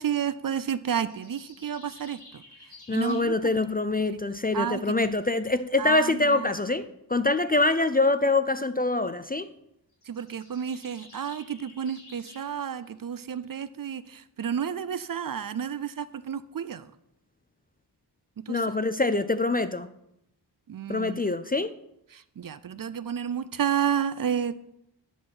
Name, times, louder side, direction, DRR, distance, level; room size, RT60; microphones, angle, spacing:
voice 1, 0.0-2.4 2.9-3.5 4.5-5.0 5.8-6.5 10.1-16.8 18.4-18.6 20.7-21.2 22.1-24.6, right 8 dB, 50° right, 0.5 m, -31 dB
sound 1, 1.1-3.3 9.9-12.5, left 2 dB, 65° left, 3.8 m, -51 dB
voice 2, 2.9-9.5 18.5-19.9 20.9-21.7, left 2 dB, 25° left, 0.4 m, -25 dB
10.0 x 4.1 x 6.1 m
wide cardioid pair, 60°, 43 cm